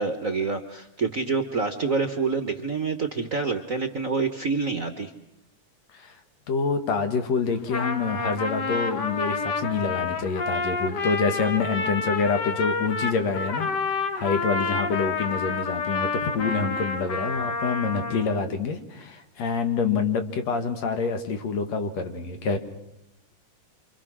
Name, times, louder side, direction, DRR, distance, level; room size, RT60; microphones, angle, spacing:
voice 1, 0.0-5.1, right 4 dB, 55° right, 7 dB, 0.8 m, -27 dB
voice 2, 6.5-22.6, left 4 dB, 65° left, 7 dB, 3.1 m, -27 dB
Trumpet, 7.5-18.4, left 4 dB, 45° left, 1.5 m, -29 dB
27.5 x 25.5 x 6.2 m, 0.83 s
omnidirectional pair, 3.4 m